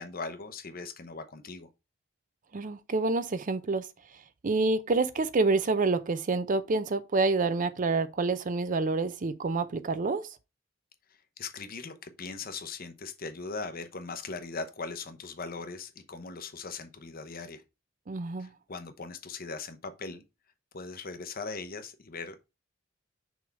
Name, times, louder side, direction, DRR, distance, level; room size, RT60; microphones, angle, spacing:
voice 1, 0.0-1.7 11.4-17.6 18.4-20.2 20.7-22.5, left 4 dB, 45° left, 0.8 m, -39 dB
voice 2, 2.5-3.9 4.4-10.2 18.1-18.5, right 3 dB, 40° right, 0.5 m, -27 dB
6.1 x 3.5 x 4.5 m
head